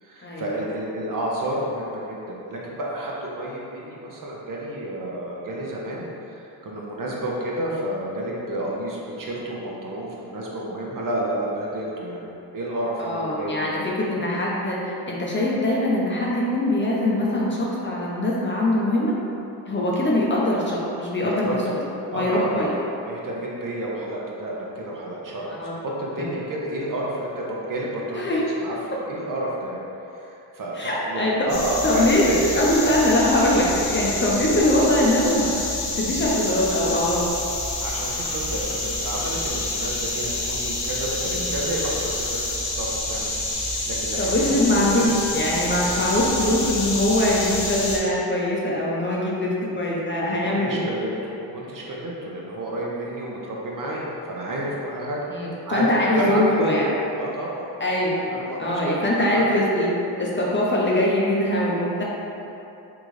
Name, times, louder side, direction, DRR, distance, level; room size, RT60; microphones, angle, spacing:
voice 1, 0.0-12.2 12.5-13.8 21.2-21.5 22.1-22.6 23.1-29.8 30.1-32.4 32.8-32.9 33.8-34.1 37.8-43.2 43.9-45.1 50.3-55.2 55.7-57.7 58.3-59.0 59.3-59.4, right 1 dB, 45° right, -4 dB, 0.8 m, -30 dB
voice 2, 13.0-13.7 14.1-19.1 19.7-21.6 22.1-22.7 25.5-25.7 28.1-28.4 30.7-31.3 31.8-32.3 32.5-35.5 36.0-37.3 41.3-41.4 44.2-49.5 49.7-50.8 55.3-56.8 57.8-58.1 58.6-59.9 60.2-62.0, left 1 dB, 25° left, -5 dB, 0.7 m, -22 dB
sound 1, 31.5-48.0, left 2 dB, 75° left, 0.9 m, -28 dB
3.7 x 2.4 x 3.1 m, 2.8 s
supercardioid pair, 60°, 47 cm